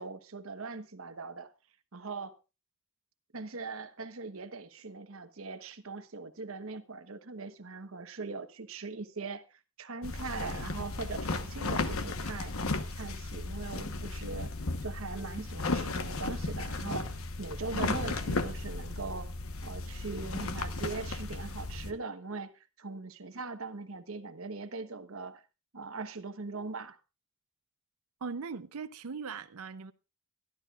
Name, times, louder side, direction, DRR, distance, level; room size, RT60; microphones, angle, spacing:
voice 1, 0.0-1.5 1.9-2.4 3.3-12.5 12.9-14.5 14.8-19.3 19.6-25.4 25.7-27.0, right 3 dB, 70° right, 1.1 m, -41 dB
sound 1, 10.0-21.9, left 3 dB, 75° left, 1.1 m, -35 dB
voice 2, 28.2-29.9, right 5 dB, 90° right, 0.6 m, -39 dB
23.5 x 12.0 x 2.4 m
head